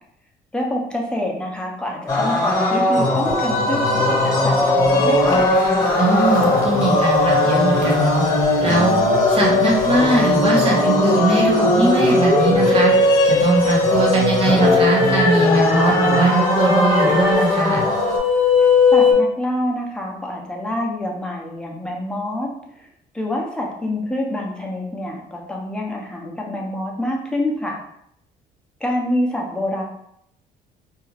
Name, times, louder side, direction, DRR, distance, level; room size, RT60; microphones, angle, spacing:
voice 1, 0.5-5.5 18.6-22.5 23.1-27.8 28.8-29.8, left 1 dB, 5° left, -1 dB, 0.6 m, -26 dB
sound 1, 2.1-18.2, left 2 dB, 20° left, 1.0 m, -20 dB
sound 2, 3.2-19.1, left 3 dB, 55° left, 0.7 m, -20 dB
Telephone, 5.8-11.0, right 8 dB, 85° right, 0.7 m, -33 dB
voice 2, 6.0-8.2 8.6-9.0 9.3-12.9 13.2-17.8, right 2 dB, 35° right, -2 dB, 1.0 m, -20 dB
2.4 x 2.2 x 3.2 m, 0.74 s
cardioid pair, 110°, 17 cm